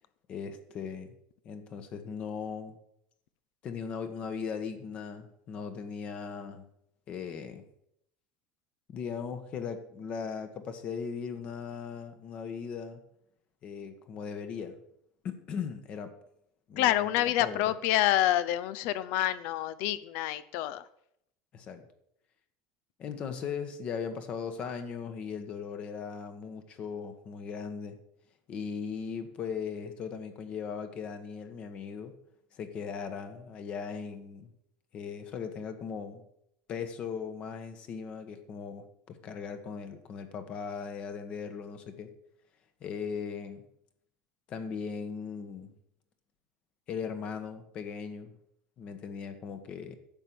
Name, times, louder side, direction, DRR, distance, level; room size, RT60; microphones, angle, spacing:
voice 1, 0.3-1.1 1.4-2.8 3.6-6.7 7.1-7.6 8.9-13.0 13.6-14.8 15.2-16.1 16.7-17.6 21.5-21.8 23.0-28.0 28.5-32.1 32.5-34.5 34.9-36.2 36.7-42.1 42.8-43.6 44.5-45.7 46.9-48.3 48.8-50.0, left 6 dB, 30° left, 9 dB, 1.3 m, -38 dB
voice 2, 16.8-20.8, left 13 dB, 55° left, 16 dB, 0.7 m, -27 dB
10.5 x 7.7 x 7.0 m, 0.75 s
cardioid pair, 170°, 4 cm